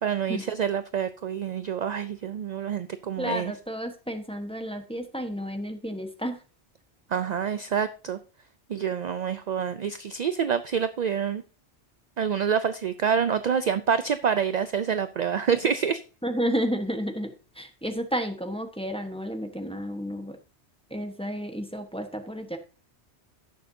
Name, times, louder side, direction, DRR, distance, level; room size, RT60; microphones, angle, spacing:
voice 1, 0.0-3.5 7.1-8.2 8.7-11.4 12.2-16.0, right 7 dB, 55° right, 11 dB, 0.5 m, -27 dB
voice 2, 3.2-6.4 16.2-20.4 20.9-22.6, equal, 5° left, 5 dB, 1.0 m, -31 dB
16.5 x 6.8 x 2.7 m, 0.34 s
omnidirectional pair, 1.2 m